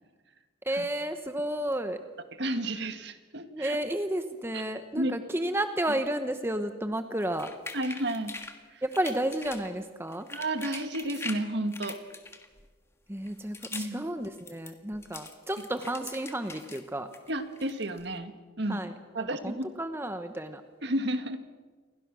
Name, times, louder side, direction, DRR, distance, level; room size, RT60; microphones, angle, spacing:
voice 1, 0.6-2.0 3.5-7.5 8.8-10.3 13.1-17.1 18.7-20.6, right 1 dB, 10° right, 8 dB, 1.0 m, -32 dB
voice 2, 2.4-3.8 4.9-5.1 7.7-8.3 8.7-8.8 10.3-12.0 13.7-14.0 17.3-18.9 19.1-19.7 20.8-21.4, right 1 dB, 55° right, 8 dB, 1.9 m, -32 dB
sound 1, 7.2-8.6 8.9-9.7 10.1-11.4 11.7-12.7 13.2-14.0 14.2-16.8 17.1-18.1, left 3 dB, 15° left, 1.6 m, -42 dB
29.0 x 22.5 x 6.2 m, 1.4 s
head